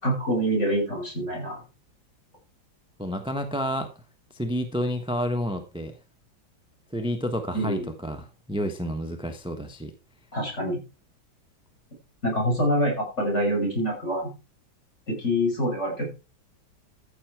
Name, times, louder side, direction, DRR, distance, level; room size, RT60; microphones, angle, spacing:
voice 1, 0.0-1.6 7.5-7.9 10.3-10.8 12.2-14.3 15.1-16.1, equal, 35° left, 6.3 m, -25 dB
voice 2, 3.0-3.9 4.3-5.9 6.9-9.9, equal, 5° right, 0.8 m, -30 dB
14.0 x 7.0 x 4.7 m
omnidirectional pair, 2.2 m